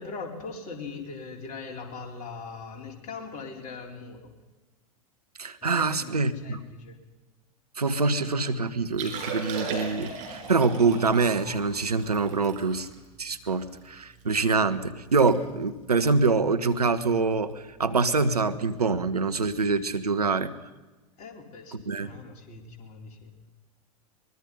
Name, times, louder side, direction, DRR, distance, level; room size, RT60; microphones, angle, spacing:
voice 1, 0.0-4.3 5.6-7.0 21.2-23.3, left 4 dB, 40° left, 2 dB, 4.3 m, -40 dB
voice 2, 5.4-6.6 7.8-12.9 13.2-20.5 21.7-22.1, right 4 dB, 85° right, 11 dB, 1.3 m, -25 dB
Liquid, 8.8-14.2 14.7-14.8 15.0-15.4 15.6-15.9 16.5-16.7 18.2-18.3, right 4 dB, 40° right, 6.3 m, -38 dB
24.0 x 21.5 x 5.5 m, 1.2 s
figure-of-eight pair, 90°, 19 cm